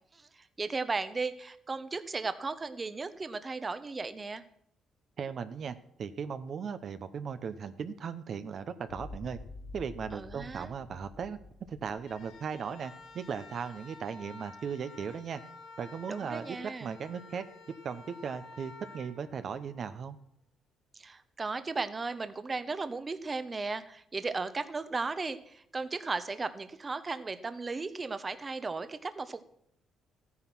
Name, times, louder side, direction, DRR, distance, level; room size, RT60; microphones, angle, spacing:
voice 1, 0.1-4.4 10.1-10.7 16.1-16.9 20.9-29.4, right 3 dB, 30° right, 12 dB, 0.9 m, -36 dB
voice 2, 5.2-9.4 9.7-11.4 11.7-15.4 15.8-17.4 17.8-20.2, right 6 dB, 55° right, 10 dB, 0.8 m, -37 dB
sound 1, 8.9-13.2, left 2 dB, 45° left, 2.0 m, -48 dB
sound 2, 12.0-20.1, left 3 dB, 80° left, 4.6 m, -51 dB
13.5 x 9.6 x 6.1 m, 0.68 s
cardioid pair, 90°, 0 cm